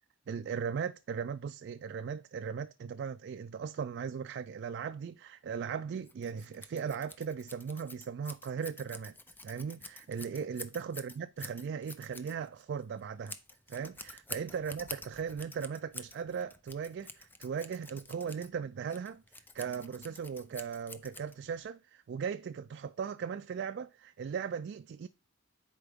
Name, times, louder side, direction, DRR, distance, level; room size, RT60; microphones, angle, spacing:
voice 1, 0.3-9.2 9.4-13.4 13.7-25.1, right 6 dB, 60° right, 0.3 m, -38 dB
Scissors, 6.0-21.7, left 2 dB, 10° left, 0.5 m, -49 dB
10.5 x 4.5 x 3.5 m
head